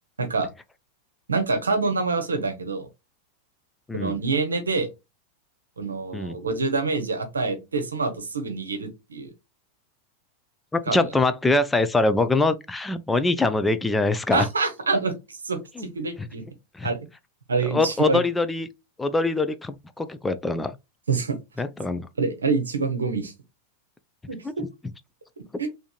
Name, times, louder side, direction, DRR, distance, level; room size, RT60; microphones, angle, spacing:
voice 1, 0.2-0.5 1.3-2.9 3.9-4.9 5.8-9.3 10.9-11.1 14.3-16.4 16.8-17.0 17.5-18.2 21.1-21.4 22.2-23.3 24.3-24.6 25.6-25.7, right 4 dB, 75° right, 0.8 m, -26 dB
voice 2, 10.7-14.5 15.8-15.9 16.7-16.9 17.6-18.7 19.0-20.8 21.6-22.1, left 2 dB, 10° left, 0.3 m, -23 dB
3.7 x 2.6 x 2.3 m
figure-of-eight pair, 90°, 0 cm